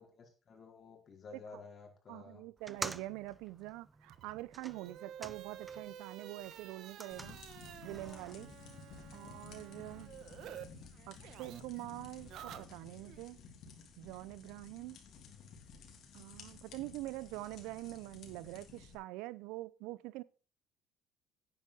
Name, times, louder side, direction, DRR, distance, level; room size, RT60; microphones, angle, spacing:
voice 1, 0.0-2.4 9.1-9.2 15.2-15.6, left 4 dB, 40° left, 4.4 m, -54 dB
voice 2, 2.1-7.4 7.8-8.5 9.1-10.1 11.1-13.4 14.0-15.0 16.1-20.2, right 18 dB, 85° right, 0.6 m, -45 dB
sound 1, 2.6-6.0 6.3-8.3, right 2 dB, 15° right, 0.7 m, -48 dB
sound 2, 4.0-10.6 10.9-13.2, right 10 dB, 65° right, 1.3 m, -51 dB
sound 3, 7.1-18.9, left 4 dB, 60° left, 3.3 m, -54 dB
10.5 x 9.5 x 4.3 m
cardioid pair, 105°, 0 cm